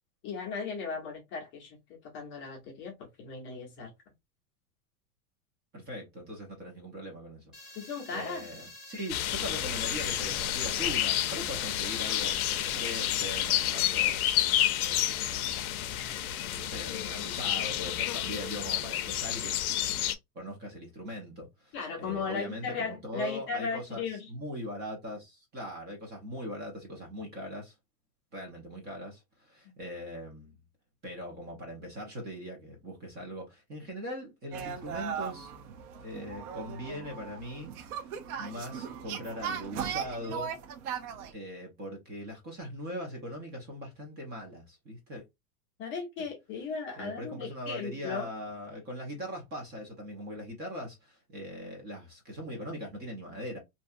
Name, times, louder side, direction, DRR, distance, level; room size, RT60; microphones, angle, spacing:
voice 1, 0.2-3.9 7.7-8.5 21.7-24.3 45.8-48.3, left 5 dB, 25° left, 0.7 m, -36 dB
voice 2, 5.7-7.8 8.1-14.5 14.8-15.3 16.6-19.6 20.3-24.0 24.3-27.7 28.3-30.6 31.0-35.5 36.0-38.1 38.4-40.5 41.3-45.2 47.0-53.6, equal, 20° right, 0.8 m, -41 dB
sound 1, 7.5-13.7, left 2 dB, ahead, 1.0 m, -47 dB
sound 2, 9.1-20.1, left 12 dB, 65° left, 0.6 m, -30 dB
sound 3, 34.5-41.3, right 7 dB, 75° right, 0.7 m, -38 dB
2.6 x 2.4 x 2.5 m
supercardioid pair, 155°, 46 cm